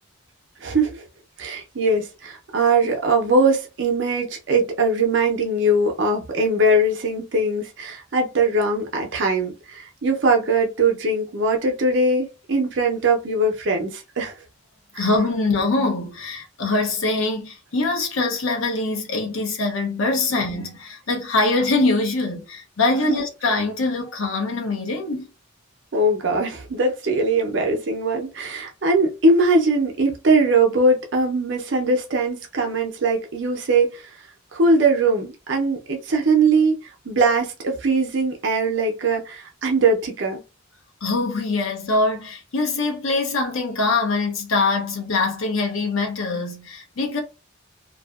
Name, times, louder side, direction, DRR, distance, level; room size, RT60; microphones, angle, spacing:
voice 1, 0.6-1.0 1.4-14.3 14.9-15.1 25.9-34.1 34.5-40.4, right 2 dB, 60° right, 0.6 m, -21 dB
voice 2, 15.0-25.3 41.0-47.2, left 3 dB, 85° left, 0.7 m, -23 dB
2.6 x 2.3 x 2.3 m
head